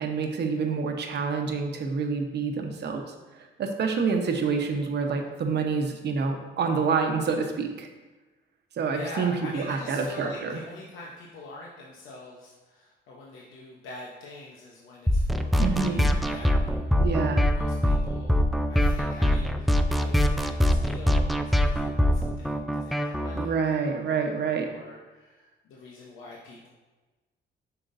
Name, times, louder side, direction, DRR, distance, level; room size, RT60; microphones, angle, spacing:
voice 1, 0.0-3.0 3.6-7.9 8.8-10.6 15.6-16.1 17.0-17.5 23.3-24.7, right 5 dB, 60° right, 4 dB, 1.0 m, -27 dB
voice 2, 8.9-16.9 17.5-18.4 18.7-26.7, left 2 dB, 80° left, -3 dB, 0.9 m, -44 dB
sound 1, 15.1-23.5, equal, ahead, 0.4 m, -23 dB
8.9 x 5.9 x 2.6 m, 1.2 s
cardioid pair, 90°, 20 cm